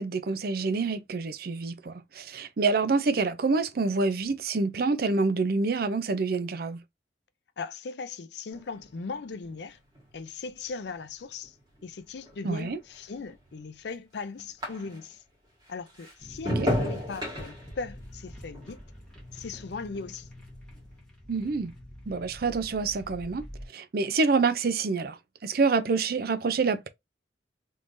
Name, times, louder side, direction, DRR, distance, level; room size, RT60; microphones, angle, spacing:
voice 1, 0.0-6.8 12.4-12.8 16.6-16.7 21.3-21.7 22.1-23.4 23.7-26.9, right 4 dB, 55° right, 0.5 m, -27 dB
voice 2, 7.6-9.8 10.1-11.6 11.8-15.2 15.7-18.8 19.3-20.3, left 4 dB, 70° left, 0.5 m, -38 dB
sound 1, 8.5-15.3 15.6-20.2 20.5-21.0, left 1 dB, 25° right, 1.7 m, -36 dB
sound 2, 16.2-23.7, equal, 5° left, 1.5 m, -46 dB
3.5 x 3.2 x 2.6 m
head